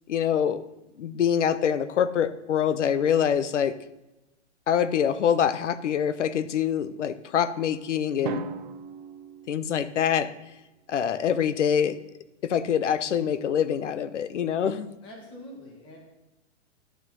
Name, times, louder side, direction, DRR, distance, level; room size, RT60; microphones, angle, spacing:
voice 1, 0.1-0.6 1.0-3.7 4.7-8.4 9.5-10.3 10.9-12.0 12.4-14.9, left 8 dB, 80° left, 14 dB, 0.9 m, -25 dB
Drum, 8.2-10.3, right 6 dB, 45° right, 0.6 m, -37 dB
voice 2, 15.0-16.0, left 1 dB, 15° left, 1 dB, 1.7 m, -44 dB
11.0 x 6.3 x 5.4 m, 0.97 s
hypercardioid pair, 175°, 35 cm